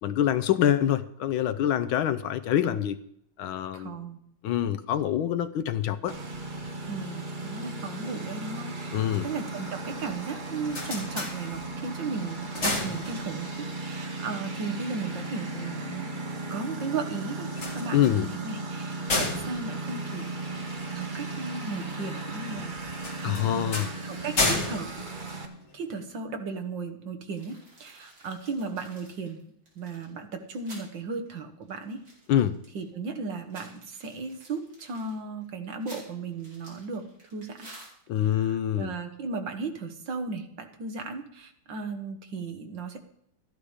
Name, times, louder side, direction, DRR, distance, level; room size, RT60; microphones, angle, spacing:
voice 1, 0.0-3.0 3.4-4.0 4.4-6.1 8.9-9.3 17.9-18.3 23.2-23.9 32.3-32.6 38.1-38.9, left 11 dB, 75° left, 1.5 m, -25 dB
voice 2, 3.7-4.2 6.9-16.2 16.5-20.7 20.9-23.7 24.0-25.0 25.7-29.4 29.8-32.0 32.7-37.7 38.2-43.0, right 4 dB, 60° right, 2.0 m, -36 dB
Engine, 6.1-25.5, right 2 dB, 25° right, 1.3 m, -36 dB
sound 1, 10.4-11.9 12.3-13.6 17.4-20.9 23.0-26.0, left 2 dB, 35° left, 2.5 m, -32 dB
sound 2, 27.3-30.9 31.3-31.4 31.6-32.9 33.3-38.3, right 1 dB, 45° right, 5.0 m, -51 dB
13.5 x 11.5 x 4.9 m
omnidirectional pair, 2.3 m